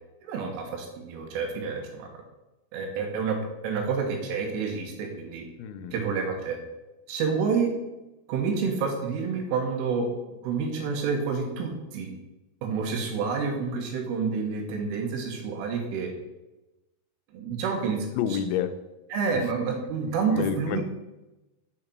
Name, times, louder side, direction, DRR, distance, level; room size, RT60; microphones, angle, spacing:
voice 1, 0.2-2.1 2.7-5.4 5.9-6.6 7.1-7.7 8.3-10.1 10.4-12.1 12.6-16.1 17.3-18.1 19.1-20.8, right 5 dB, 80° right, 2 dB, 3.5 m, -28 dB
voice 2, 5.6-6.0 18.1-18.8 19.3-19.4 20.3-20.8, left 9 dB, 90° left, 8 dB, 3.3 m, -29 dB
8.1 x 3.8 x 6.0 m, 1.0 s
omnidirectional pair, 5.9 m